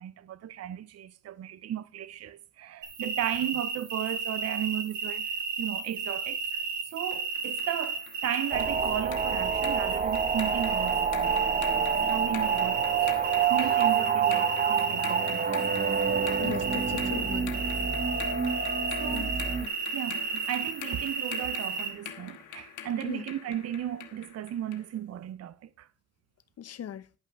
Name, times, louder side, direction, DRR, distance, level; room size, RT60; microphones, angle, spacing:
voice 1, 0.0-12.9 13.4-15.6 18.9-19.3 19.9-25.9, right 11 dB, 55° right, 0.7 m, -35 dB
sound 1, 2.8-21.9, right 5 dB, 75° right, 3.0 m, -33 dB
sound 2, 7.1-24.9, left 9 dB, 80° left, 1.5 m, -44 dB
sound 3, 8.5-19.7, right 7 dB, 30° right, 0.9 m, -28 dB
voice 2, 16.4-17.6 19.0-19.3 19.6-19.7 23.0-23.2 26.6-27.1, left 9 dB, 55° left, 0.9 m, -38 dB
10.5 x 5.8 x 5.8 m
cardioid pair, 90°, 30 cm